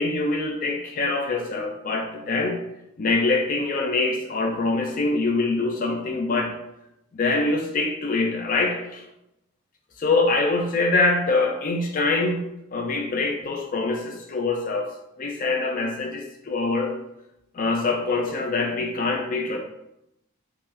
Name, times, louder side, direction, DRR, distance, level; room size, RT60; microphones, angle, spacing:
voice 1, 0.0-2.6 3.0-6.6 7.1-9.0 10.0-14.9 15.2-16.9 17.5-19.6, left 3 dB, 40° left, 2 dB, 0.3 m, -24 dB
5.4 x 2.0 x 2.3 m, 0.84 s
head